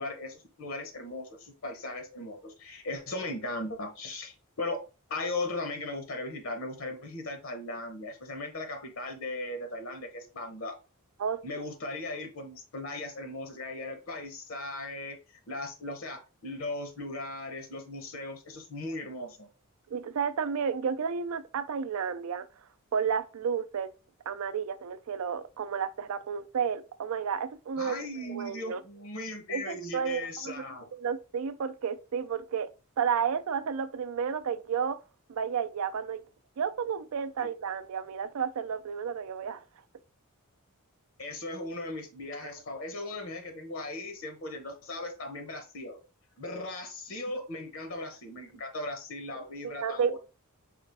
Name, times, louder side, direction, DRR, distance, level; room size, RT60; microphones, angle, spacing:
voice 1, 0.0-4.8 5.1-10.8 11.4-15.2 15.5-19.5 27.8-30.9 37.4-37.5 41.2-46.0 46.4-50.2, left 2 dB, 65° left, 0.9 m, -38 dB
voice 2, 11.2-11.6 19.9-22.5 22.9-23.9 24.3-28.0 28.3-28.8 29.5-30.6 30.9-32.7 33.0-35.0 35.3-36.2 36.6-39.6 42.4-42.5 49.6-50.2, right 7 dB, 70° right, 0.4 m, -32 dB
4.4 x 2.4 x 3.3 m
head